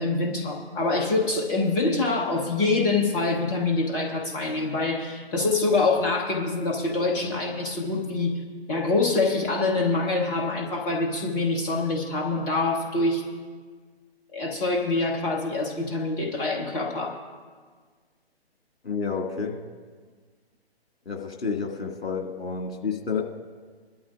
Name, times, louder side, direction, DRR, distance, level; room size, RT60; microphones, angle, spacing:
voice 1, 0.0-8.4 8.7-13.2 14.3-17.2, left 3 dB, 20° left, 0 dB, 0.9 m, -25 dB
voice 2, 18.8-19.6 21.1-23.2, left 5 dB, 65° left, 2 dB, 2.1 m, -30 dB
22.5 x 12.0 x 2.5 m, 1.5 s
figure-of-eight pair, 130°, 32 cm